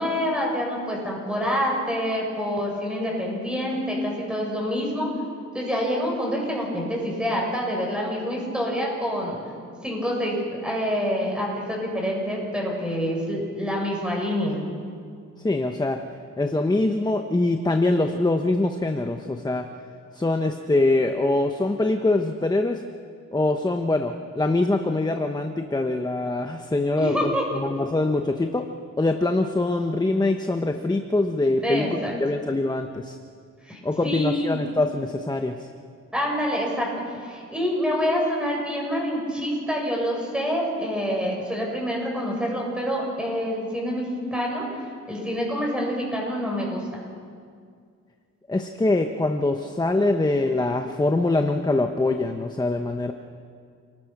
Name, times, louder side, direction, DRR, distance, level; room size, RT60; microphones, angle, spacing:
voice 1, 0.0-5.1 5.5-9.4 9.8-14.6 27.0-27.4 31.6-32.1 33.6-34.6 36.1-44.7 45.1-46.8, equal, 5° right, -2 dB, 7.4 m, -27 dB
voice 2, 15.4-16.0 16.4-19.7 20.1-22.8 23.3-28.7 29.0-31.9 32.2-33.2 33.8-35.6 48.5-53.1, left 2 dB, 15° left, 5 dB, 1.1 m, -23 dB
29.5 x 20.0 x 6.1 m, 2.2 s
wide cardioid pair, 130°, 30 cm